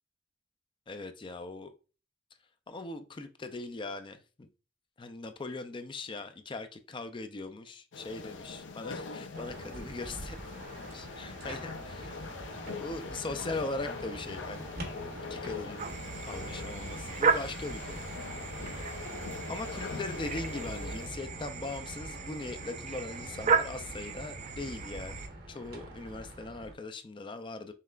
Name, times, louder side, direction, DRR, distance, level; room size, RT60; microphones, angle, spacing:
voice 1, 0.9-1.7 2.7-4.5 5.0-10.4 10.9-12.2 12.8-14.7 15.3-15.9 16.3-18.1 19.5-25.1 25.5-27.7, left 3 dB, 25° left, 0.4 m, -40 dB
sound 1, 7.9-21.1, left 4 dB, 75° left, 0.5 m, -42 dB
sound 2, 9.3-26.7, right 1 dB, 55° right, 1.0 m, -46 dB
sound 3, 15.8-25.3, right 5 dB, 40° right, 0.4 m, -34 dB
5.7 x 3.2 x 2.4 m
head